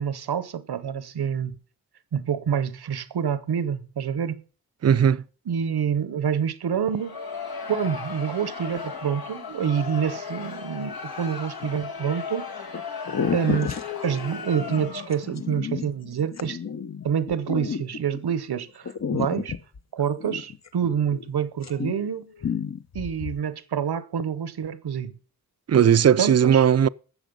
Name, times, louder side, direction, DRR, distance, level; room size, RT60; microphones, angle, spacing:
voice 1, 0.0-1.6 2.1-4.4 5.5-7.2 7.7-12.4 13.3-13.7 14.0-16.6 17.0-19.6 19.9-22.3 22.9-25.1 26.2-26.6, right 8 dB, 90° right, 0.8 m, -27 dB
voice 2, 4.8-5.2 25.7-26.9, right 8 dB, 45° right, 0.4 m, -17 dB
Crowd, 6.9-15.3, left 5 dB, 70° left, 1.6 m, -36 dB
sound 1, 11.6-12.1 12.7-12.8 13.1-18.4 18.9-21.3 21.6-22.1 22.4-23.4, left 6 dB, 45° left, 0.7 m, -32 dB
15.0 x 6.3 x 5.3 m
wide cardioid pair, 65°, 38 cm